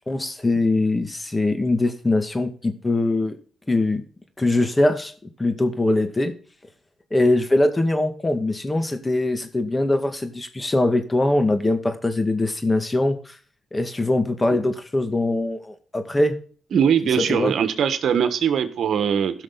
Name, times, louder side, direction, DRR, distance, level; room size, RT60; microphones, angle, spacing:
voice 1, 0.1-3.4 3.7-4.1 4.4-6.3 7.1-13.4 13.7-16.4 17.2-17.5, left 2 dB, 20° left, 8 dB, 2.1 m, -22 dB
voice 2, 16.7-19.4, right 8 dB, 70° right, 10 dB, 1.5 m, -21 dB
16.0 x 6.2 x 4.0 m, 0.42 s
cardioid pair, 65°, 0 cm